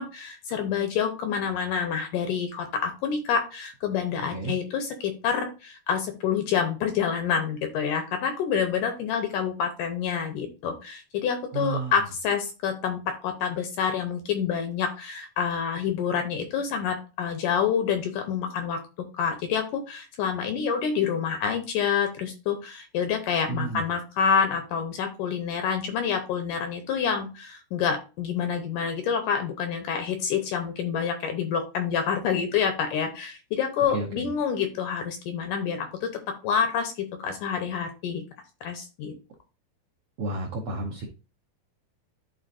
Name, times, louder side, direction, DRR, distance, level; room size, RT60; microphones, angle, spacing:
voice 1, 0.0-18.8 19.1-36.1 36.4-38.2 38.6-39.1, left 7 dB, 75° left, 6 dB, 2.1 m, -27 dB
voice 2, 11.5-12.0 23.5-23.8 33.9-34.2 40.2-41.1, right 3 dB, 75° right, -2 dB, 1.5 m, -31 dB
11.5 x 3.9 x 2.5 m, 0.31 s
omnidirectional pair, 4.3 m